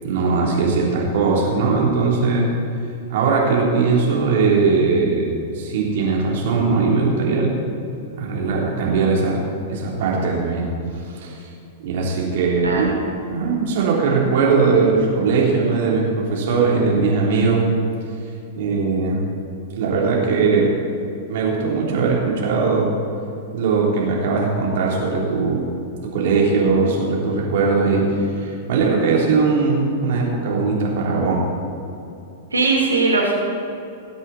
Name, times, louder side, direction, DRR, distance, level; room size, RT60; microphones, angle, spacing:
voice 1, 0.0-2.5 3.1-5.3 5.5-7.5 8.2-9.4 9.7-10.7 11.0-11.4 11.8-13.0 13.3-17.6 18.5-19.2 19.8-20.7 21.3-22.9 23.5-25.7 26.0-31.4, right 4 dB, 60° right, -3 dB, 3.6 m, -19 dB
voice 2, 12.6-13.0 32.5-33.3, right 3 dB, 90° right, -2 dB, 2.7 m, -19 dB
20.0 x 8.0 x 4.3 m, 2.7 s
figure-of-eight pair, 100°, 0 cm